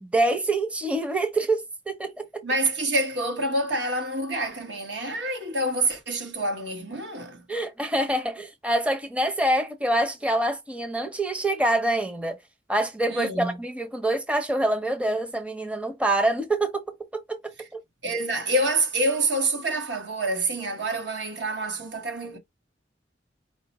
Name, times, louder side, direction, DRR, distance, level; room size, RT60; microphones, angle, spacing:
voice 1, 0.0-2.4 7.5-12.4 12.7-16.8 17.1-17.4 17.7-17.8, right 1 dB, 5° right, 0.6 m, -25 dB
voice 2, 2.4-7.4 13.1-13.6 18.0-22.4, right 2 dB, 80° right, 1.4 m, -27 dB
5.0 x 2.1 x 4.1 m
head